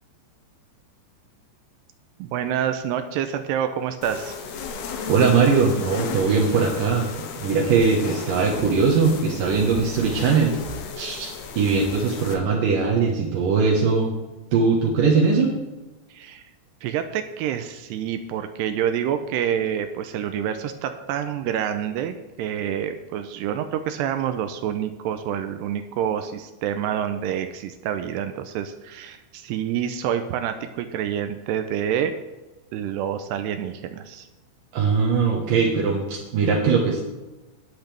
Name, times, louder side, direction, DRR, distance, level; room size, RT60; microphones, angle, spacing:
voice 1, 2.2-4.3 16.1-16.4 16.8-32.1 32.7-34.3, right 9 dB, 85° right, 8 dB, 2.5 m, -27 dB
sound 1, 4.0-12.3, left 5 dB, 70° left, 2.9 m, -34 dB
voice 2, 5.1-7.1 7.4-10.6 11.0-14.1 14.5-15.6 34.7-37.0, right 5 dB, 65° right, -2 dB, 2.3 m, -20 dB
19.5 x 8.1 x 3.4 m, 1.1 s
omnidirectional pair, 5.4 m